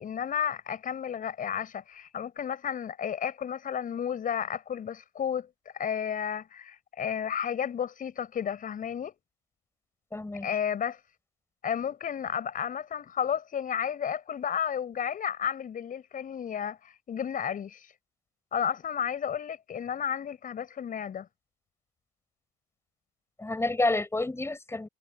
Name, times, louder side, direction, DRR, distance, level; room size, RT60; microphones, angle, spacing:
voice 1, 0.0-5.5 5.7-9.1 10.4-11.0 11.6-17.9 18.5-21.3, left 8 dB, 45° left, 6.1 m, -32 dB
voice 2, 10.1-10.5 23.4-24.9, left 2 dB, 15° left, 6.3 m, -29 dB
hypercardioid pair, 65°, 20 cm